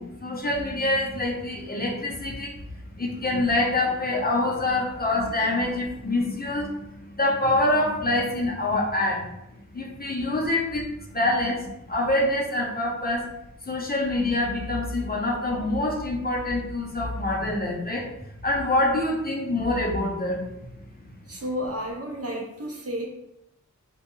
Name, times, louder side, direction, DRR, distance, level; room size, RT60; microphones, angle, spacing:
voice 1, 0.0-2.6 3.0-9.3 9.7-13.3 13.6-18.1 18.4-20.6, left 2 dB, 30° left, -1 dB, 0.5 m, -26 dB
voice 2, 21.3-23.1, equal, 50° right, 0 dB, 0.6 m, -31 dB
2.2 x 2.1 x 2.9 m, 0.85 s
wide cardioid pair, 50°, 31 cm